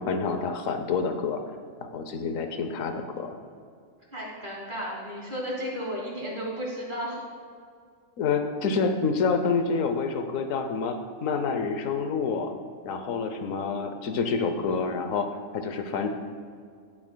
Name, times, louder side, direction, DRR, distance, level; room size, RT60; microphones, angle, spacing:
voice 1, 0.0-1.4 1.9-3.3 8.2-12.5 12.8-15.3 15.5-16.1, left 5 dB, 80° left, 7 dB, 1.1 m, -28 dB
voice 2, 4.1-7.2, equal, 40° right, -4 dB, 1.8 m, -33 dB
17.0 x 6.1 x 2.2 m, 2.2 s
omnidirectional pair, 1.3 m